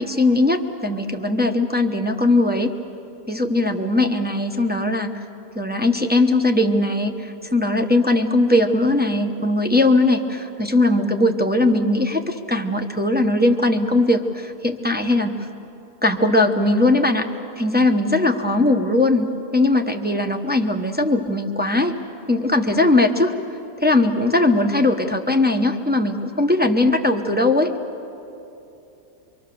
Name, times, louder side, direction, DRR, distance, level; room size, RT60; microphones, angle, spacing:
voice 1, 0.0-2.7 3.3-5.1 5.6-15.3 16.0-17.3 17.6-21.9 22.3-23.3 23.8-27.7, left 2 dB, 10° right, 3 dB, 0.6 m, -19 dB
26.0 x 23.5 x 6.9 m, 2.9 s
omnidirectional pair, 1.8 m